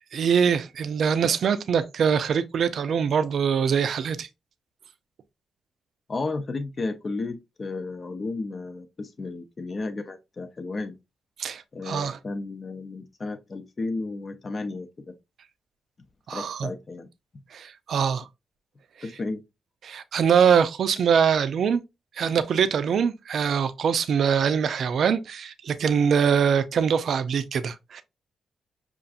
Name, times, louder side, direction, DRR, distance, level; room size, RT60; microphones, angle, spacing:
voice 1, 0.1-4.3 11.4-12.2 16.3-16.7 17.5-18.3 19.8-21.8 22.2-28.0, right 7 dB, 70° right, 0.4 m, -23 dB
voice 2, 6.1-10.9 11.7-15.1 16.3-17.1 19.0-19.4, left 3 dB, 45° left, 0.6 m, -33 dB
5.5 x 2.5 x 2.4 m
supercardioid pair, 50°, 0 cm